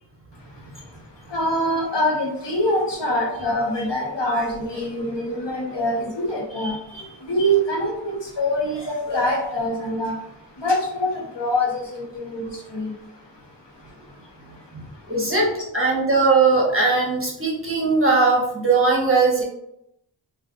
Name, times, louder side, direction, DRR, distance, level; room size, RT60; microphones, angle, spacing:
voice 1, 1.3-6.8 7.2-10.2 10.6-12.9, equal, 65° left, -2 dB, 0.9 m, -24 dB
voice 2, 6.5-7.1 14.7-14.8 15.1-19.4, right 3 dB, 30° right, -3 dB, 0.9 m, -20 dB
2.5 x 2.4 x 3.6 m, 0.78 s
wide cardioid pair, 45°, 47 cm